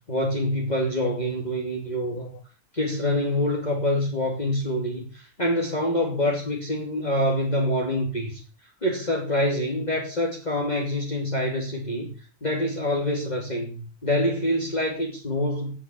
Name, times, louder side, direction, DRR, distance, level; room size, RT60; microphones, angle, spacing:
voice 1, 0.1-2.4 2.7-8.4 8.8-12.1 12.4-15.8, left 1 dB, 25° left, 0 dB, 2.9 m, -26 dB
17.0 x 8.9 x 6.9 m, 0.37 s
omnidirectional pair, 1.6 m